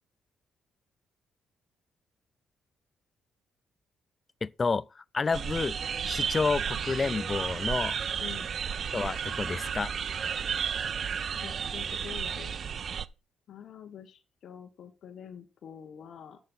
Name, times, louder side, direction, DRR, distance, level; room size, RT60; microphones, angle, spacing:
voice 1, 4.4-5.8 6.1-8.0 8.9-9.9, left 4 dB, 30° left, 0.4 m, -30 dB
sound 1, 5.3-13.1, right 7 dB, 50° right, 0.5 m, -33 dB
voice 2, 11.4-12.6 13.5-16.4, left 8 dB, 65° left, 1.4 m, -46 dB
8.8 x 6.7 x 5.6 m
cardioid pair, 90°, 0 cm